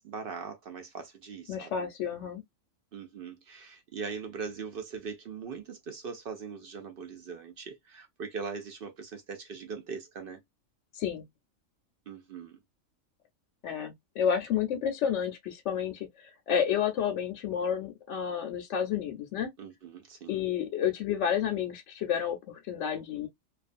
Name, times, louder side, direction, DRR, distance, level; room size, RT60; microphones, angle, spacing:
voice 1, 0.0-1.7 2.9-10.4 12.1-12.6 19.6-20.4, right 5 dB, 60° right, 0.6 m, -41 dB
voice 2, 1.5-2.4 10.9-11.2 13.6-19.5 20.3-23.3, left 8 dB, 70° left, 0.8 m, -30 dB
2.4 x 2.3 x 2.4 m
omnidirectional pair, 1.3 m